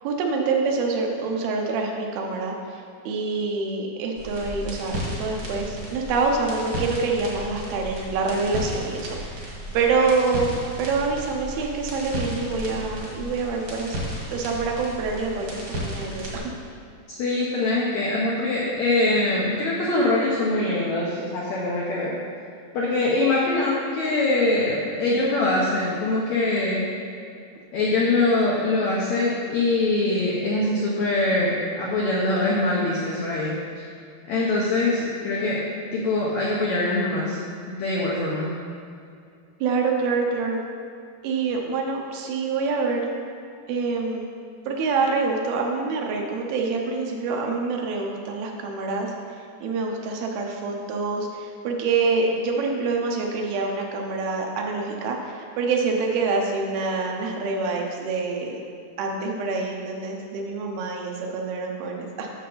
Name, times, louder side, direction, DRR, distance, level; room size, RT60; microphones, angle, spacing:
voice 1, 0.0-14.0 14.3-16.5 39.6-40.6 41.2-43.1 43.7-44.3 44.7-58.6 59.0-62.3, right 4 dB, 80° right, 1 dB, 2.7 m, -26 dB
sound 1, 4.2-16.4, equal, 50° right, 1.2 m, -34 dB
voice 2, 17.1-22.2 22.7-26.9 27.7-33.8 34.3-35.6 35.9-37.4 37.7-38.5, left 2 dB, 85° left, -5 dB, 1.6 m, -23 dB
8.5 x 6.5 x 3.9 m, 2.4 s
omnidirectional pair, 4.4 m